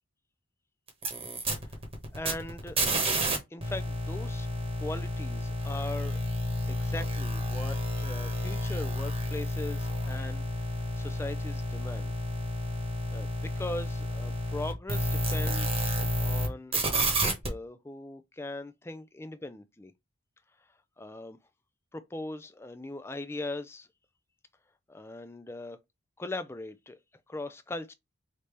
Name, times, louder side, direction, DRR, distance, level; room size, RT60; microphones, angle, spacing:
sound 1, 0.9-3.4 3.6-16.5 16.7-17.5, equal, 25° right, 1.2 m, -30 dB
voice 1, 2.1-2.8 3.2-4.5 4.8-6.2 6.7-12.1 13.1-19.9 21.0-21.4 21.9-23.9 24.9-25.8 26.2-27.0 27.3-27.9, left 2 dB, 10° left, 0.3 m, -40 dB
5.1 x 2.8 x 3.2 m
head